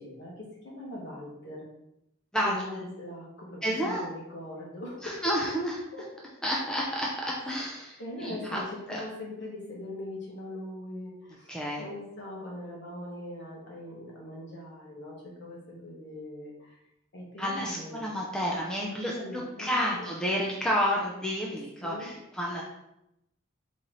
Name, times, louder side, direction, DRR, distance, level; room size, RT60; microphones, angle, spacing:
voice 1, 0.0-1.7 2.3-5.2 5.9-6.1 7.5-16.8 17.1-18.2 18.9-20.2 21.8-22.1, left 1 dB, 55° left, -3 dB, 1.4 m, -41 dB
voice 2, 3.6-4.0 5.0-5.8 6.4-8.6 8.9-9.0 11.5-11.8 17.4-22.6, equal, 5° left, -3 dB, 0.5 m, -30 dB
4.1 x 3.2 x 3.9 m, 0.84 s
head